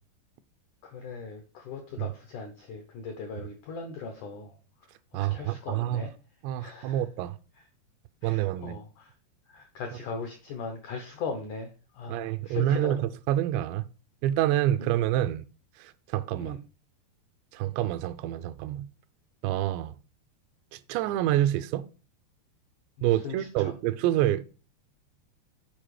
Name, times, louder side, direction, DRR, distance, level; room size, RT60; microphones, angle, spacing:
voice 1, 0.8-4.6 5.3-6.1 6.6-7.0 8.2-9.1 9.5-11.7 11.9-13.0 14.8-14.9 16.4-16.6 23.0-23.7, left 4 dB, 75° left, 1.8 m, -39 dB
voice 2, 5.1-6.0 6.4-7.4 8.2-8.8 12.1-13.8 14.2-15.5 15.8-16.6 17.5-18.9 19.4-19.9 20.7-21.9 23.0-24.4, right 13 dB, 85° right, 2.8 m, -27 dB
8.9 x 4.9 x 4.8 m
omnidirectional pair, 5.0 m